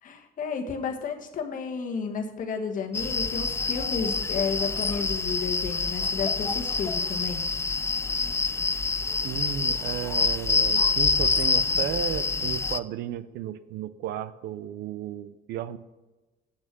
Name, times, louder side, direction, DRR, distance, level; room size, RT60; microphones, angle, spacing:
voice 1, 0.0-7.4, left 5 dB, 50° left, 4 dB, 1.4 m, -32 dB
sound 1, 2.9-12.8, left 4 dB, 15° left, 0.4 m, -26 dB
voice 2, 9.2-15.8, right 10 dB, 75° right, 14 dB, 0.6 m, -34 dB
8.3 x 6.3 x 6.1 m, 1.1 s
cardioid pair, 110°, 17 cm